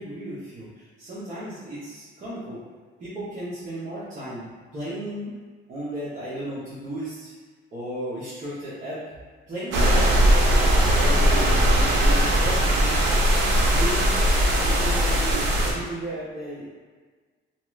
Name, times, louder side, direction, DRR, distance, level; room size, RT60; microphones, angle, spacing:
voice 1, 0.0-2.6 3.0-5.4 5.7-7.3 7.7-9.0 9.5-10.3 10.5-14.1 14.6-16.8, right 1 dB, 35° right, -12 dB, 0.8 m, -35 dB
sound 1, 9.7-15.7, equal, 60° right, 0.7 m, -19 dB
2.8 x 2.4 x 3.1 m, 1.4 s
cardioid pair, 155°, 21 cm